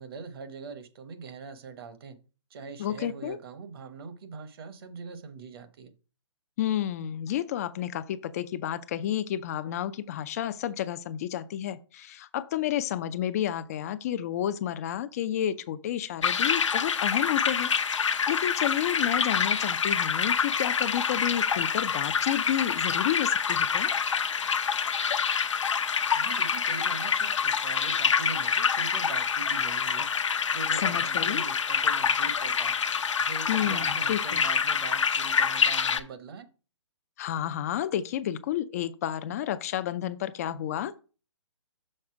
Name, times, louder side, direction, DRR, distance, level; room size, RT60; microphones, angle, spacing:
voice 1, 0.0-2.2 2.5-5.9 26.1-30.1 30.5-32.7 33.2-36.5, right 4 dB, 50° right, 1.0 m, -42 dB
voice 2, 2.8-3.4 6.6-23.9 30.8-31.4 33.5-34.4 37.2-41.0, left 11 dB, 30° left, 0.4 m, -31 dB
sound 1, 16.2-36.0, left 6 dB, 75° left, 0.7 m, -26 dB
6.5 x 4.2 x 4.7 m
hypercardioid pair, 140°, 16 cm